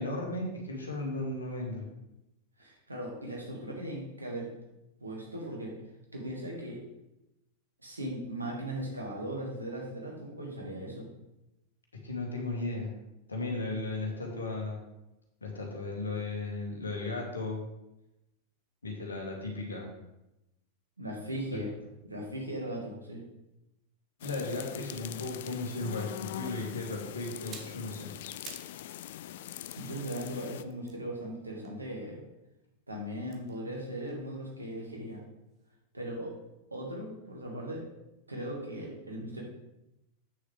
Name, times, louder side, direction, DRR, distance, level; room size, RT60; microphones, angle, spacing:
voice 1, 0.0-1.9 12.0-12.9 13.3-14.8 15.4-17.6 18.8-19.9 21.5-21.6 24.2-28.1, left 2 dB, 75° left, 0 dB, 1.9 m, -35 dB
voice 2, 2.6-4.5 5.0-5.8 6.1-6.8 7.8-11.1 21.0-21.7 22.0-23.2 29.8-32.2 32.9-35.2 35.9-36.4 36.7-37.9 38.3-39.4, right 1 dB, 80° right, -2 dB, 2.1 m, -38 dB
sound 1, 24.2-30.6, left 12 dB, 55° left, 0.3 m, -42 dB
sound 2, 27.3-28.8 29.1-32.4 33.2-35.2 35.5-35.7, right 6 dB, 35° right, 1.2 m, -53 dB
8.4 x 6.6 x 3.6 m, 0.91 s
figure-of-eight pair, 90°, 0 cm